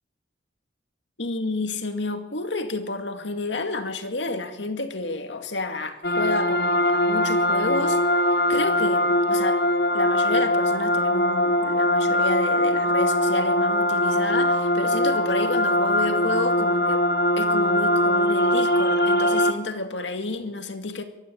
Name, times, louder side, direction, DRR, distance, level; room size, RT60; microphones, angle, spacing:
voice 1, 1.2-8.0 8.5-9.6 9.9-17.0 17.4-21.0, left 2 dB, 80° left, 2.2 m, -30 dB
sound 1, 6.0-19.5, left 1 dB, 60° left, 1.2 m, -21 dB
23.0 x 13.0 x 8.6 m
head